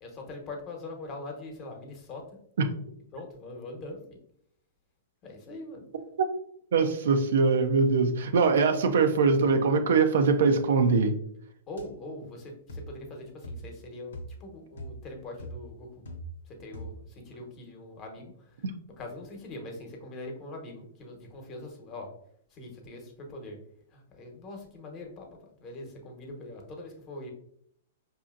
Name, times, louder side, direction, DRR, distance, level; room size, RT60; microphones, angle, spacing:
voice 1, 0.0-2.4 3.1-4.2 5.2-5.8 11.7-15.9 16.5-18.5 19.0-22.1 22.5-23.6 23.9-25.3 25.6-27.3, left 2 dB, 30° left, 2 dB, 1.0 m, -42 dB
voice 2, 6.7-11.1, right 4 dB, 75° right, 7 dB, 0.5 m, -22 dB
sound 1, 11.8-11.9 12.7-13.0 13.4-13.8 14.1-14.5 14.8-15.1 15.4-16.5 16.7-17.1, right 1 dB, 80° left, 0.7 m, -41 dB
4.9 x 2.7 x 2.4 m, 0.70 s
hypercardioid pair, 130°, 0 cm